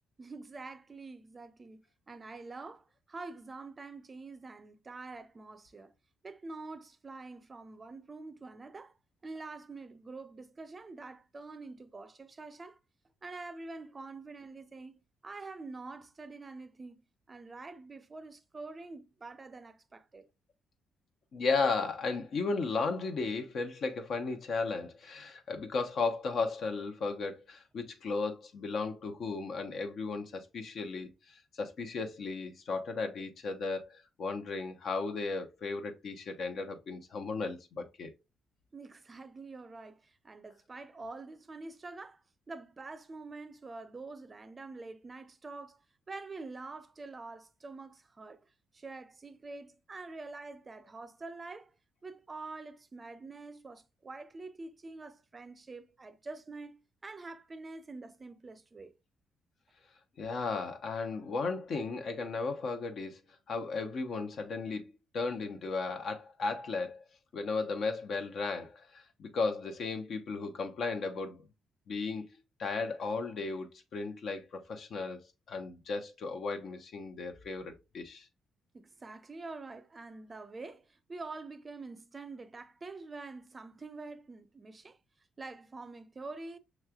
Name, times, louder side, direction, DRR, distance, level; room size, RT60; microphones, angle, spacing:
voice 1, 0.2-5.9 6.2-8.9 9.2-12.8 13.2-20.3 38.7-42.2 42.5-45.8 46.1-51.7 52.0-58.9 78.7-85.0 85.4-86.6, right 3 dB, 30° right, 0.5 m, -46 dB
voice 2, 21.3-38.1 60.2-63.2 63.5-64.8 65.1-67.0 67.3-71.5 71.9-72.3 72.6-75.2 75.5-78.3, left 4 dB, 60° left, 0.8 m, -35 dB
5.8 x 3.2 x 2.3 m
cardioid pair, 90°, 0 cm